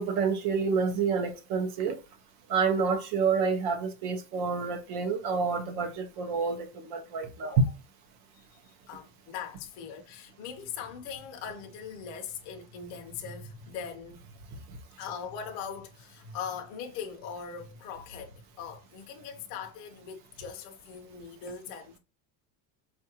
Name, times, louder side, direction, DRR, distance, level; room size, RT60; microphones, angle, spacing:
voice 1, 0.0-2.0 2.5-7.6, right 5 dB, 40° right, 0.6 m, -28 dB
voice 2, 8.9-14.5 15.0-22.0, left 7 dB, 35° left, 0.5 m, -41 dB
4.6 x 2.4 x 2.8 m
cardioid pair, 175°, 46 cm